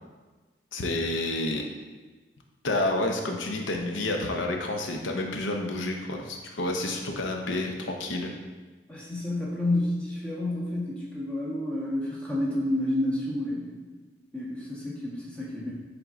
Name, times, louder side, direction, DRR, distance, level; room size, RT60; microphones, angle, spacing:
voice 1, 0.7-1.6 2.6-8.3, left 2 dB, 85° left, 2 dB, 0.7 m, -29 dB
voice 2, 8.9-13.8 14.3-15.7, left 1 dB, 5° left, -6 dB, 1.2 m, -30 dB
7.8 x 3.7 x 3.7 m, 1.3 s
head